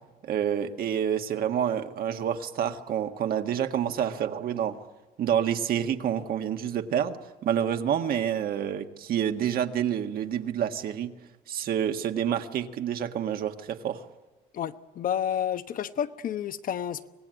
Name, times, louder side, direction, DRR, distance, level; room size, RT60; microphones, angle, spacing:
voice 1, 0.2-4.8 5.2-7.2 7.4-11.1 11.5-14.0, right 9 dB, 60° right, 1.6 m, -28 dB
voice 2, 14.5-17.1, left 9 dB, 55° left, 1.0 m, -30 dB
25.0 x 18.5 x 9.2 m
cardioid pair, 110°, 17 cm